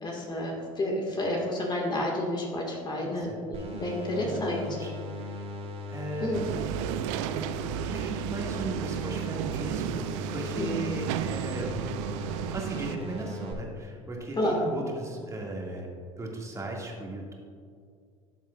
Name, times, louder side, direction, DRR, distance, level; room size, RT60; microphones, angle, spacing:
voice 1, 0.0-4.6 6.2-6.4 10.6-10.7 14.3-14.6, left 1 dB, 25° left, -1 dB, 1.7 m, -30 dB
voice 2, 3.0-3.4 4.2-4.9 5.2-5.5 5.9-6.3 7.3-11.8 12.5-15.9 16.2-17.3, right 2 dB, 15° right, -1 dB, 1.9 m, -37 dB
sound 1, 3.5-13.5, left 1 dB, 35° right, 1.3 m, -39 dB
sound 2, 6.3-13.0, right 12 dB, 60° right, 0.4 m, -33 dB
13.0 x 7.2 x 2.4 m, 2.2 s
hypercardioid pair, 75°, 18 cm